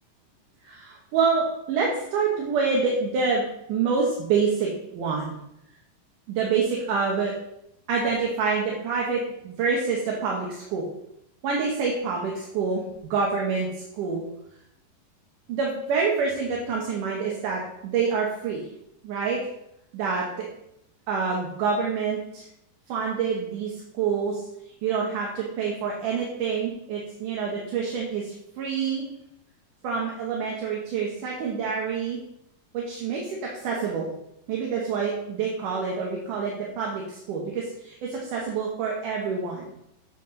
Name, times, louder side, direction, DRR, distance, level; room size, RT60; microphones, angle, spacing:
voice 1, 0.6-3.4 3.7-5.3 6.3-7.3 7.9-10.9 11.4-12.8 13.1-13.7 13.9-14.2 15.5-18.6 19.0-19.4 19.9-20.5 21.1-22.4 22.9-24.4 24.8-29.1 29.8-32.2 32.7-34.1 34.5-39.6, right 5 dB, 70° right, -2 dB, 2.6 m, -27 dB
8.2 x 7.3 x 3.9 m, 0.79 s
omnidirectional pair, 4.0 m